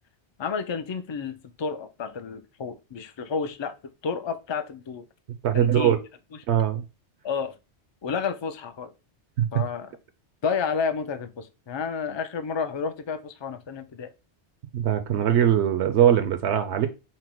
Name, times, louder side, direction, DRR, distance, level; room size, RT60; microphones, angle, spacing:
voice 1, 0.4-3.8 4.0-5.1 5.5-5.9 7.2-7.5 8.0-8.9 9.5-9.9 10.4-14.1, left 5 dB, 50° left, 0.3 m, -30 dB
voice 2, 5.4-6.0 6.5-6.8 9.4-9.5 14.7-16.9, right 10 dB, 75° right, 0.9 m, -21 dB
5.8 x 2.1 x 4.5 m
omnidirectional pair, 1.2 m